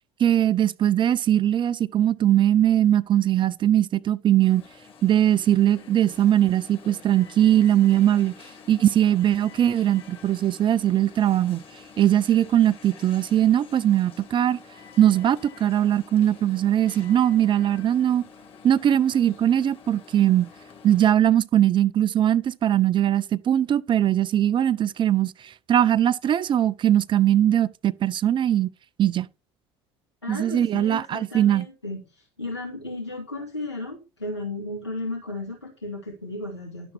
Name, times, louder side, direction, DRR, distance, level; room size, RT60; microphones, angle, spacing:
voice 1, 0.2-4.6 5.0-8.3 8.7-11.6 12.0-14.6 15.0-18.2 18.6-20.5 20.8-28.7 29.0-29.3 30.3-31.7, right 11 dB, 35° right, 0.6 m, -20 dB
Alarm, 4.4-21.1, left 6 dB, 40° left, 3.6 m, -48 dB
voice 2, 30.2-36.9, left 2 dB, 90° left, 2.1 m, -34 dB
12.0 x 7.1 x 4.5 m
figure-of-eight pair, 65°, 14 cm